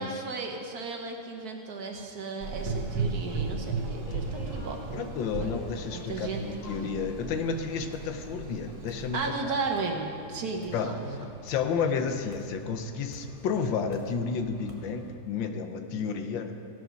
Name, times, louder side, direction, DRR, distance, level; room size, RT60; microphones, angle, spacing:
voice 1, 0.0-4.8 5.4-5.5 5.9-6.4 9.1-11.2, right 4 dB, 60° right, 2 dB, 1.5 m, -34 dB
Gurgling / Engine, 2.4-9.1, right 4 dB, 80° right, 2.0 m, -35 dB
sound 1, 3.3-15.1, left 1 dB, 45° left, 1.4 m, -47 dB
voice 2, 4.9-9.5 10.7-11.0 11.4-16.5, left 6 dB, 85° left, 7 dB, 1.6 m, -31 dB
sound 2, 7.9-8.2 8.9-9.1 9.7-9.9 10.6-10.8 11.5-11.6 12.3-12.6 13.1-13.3 13.9-14.2 14.7-14.9, left 1 dB, 20° left, 1.2 m, -52 dB
16.0 x 6.2 x 6.2 m, 2.4 s
omnidirectional pair, 2.0 m